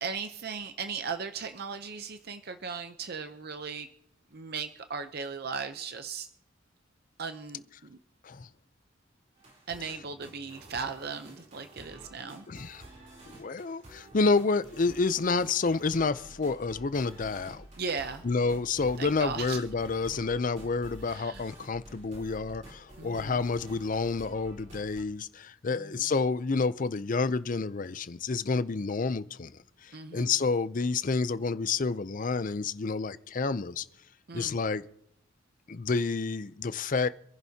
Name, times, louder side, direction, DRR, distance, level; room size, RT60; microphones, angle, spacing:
voice 1, 0.0-3.9 4.3-6.3 7.2-8.0 9.7-12.4 17.8-18.2 19.0-19.6 21.0-21.4 23.0-23.4 25.7-26.1 29.9-30.3 34.3-34.6, right 5 dB, 50° right, 8 dB, 0.7 m, -37 dB
sound 1, 9.4-25.0, right 1 dB, 35° right, 4.1 m, -50 dB
voice 2, 12.5-12.8 13.2-17.6 18.2-29.5 29.8-33.9 34.3-34.8 35.7-37.1, left 4 dB, 40° left, 14 dB, 0.5 m, -29 dB
26.5 x 11.0 x 2.8 m, 0.73 s
head